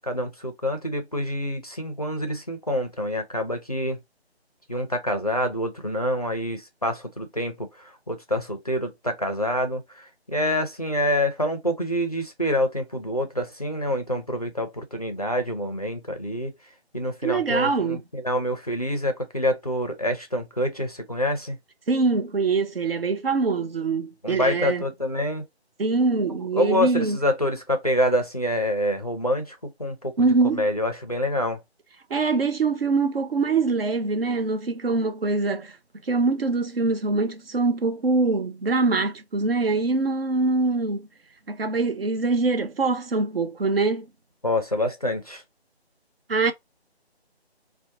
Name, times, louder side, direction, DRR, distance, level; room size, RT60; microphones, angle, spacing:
voice 1, 0.0-4.0 4.7-16.5 16.9-21.6 24.2-25.4 26.3-30.3 30.5-31.6 44.4-45.4, equal, 35° left, 0.4 m, -26 dB
voice 2, 17.2-18.0 21.9-24.8 25.8-27.2 30.2-30.7 32.1-35.8 36.1-41.1 41.5-44.1 46.3-46.5, right 3 dB, 60° right, 0.6 m, -23 dB
2.6 x 2.1 x 2.6 m
figure-of-eight pair, 155°, 33 cm